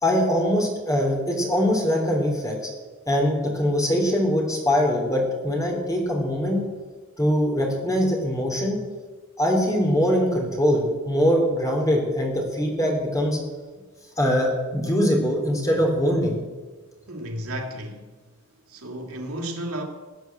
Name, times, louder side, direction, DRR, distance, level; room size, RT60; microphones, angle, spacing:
voice 1, 0.0-2.7 3.1-6.7 7.2-8.8 9.4-13.4 14.2-16.4, equal, 15° left, 0 dB, 3.3 m, -22 dB
voice 2, 17.1-18.1 18.7-19.8, right 1 dB, 85° right, 1 dB, 2.6 m, -33 dB
17.0 x 9.1 x 7.7 m, 1.4 s
head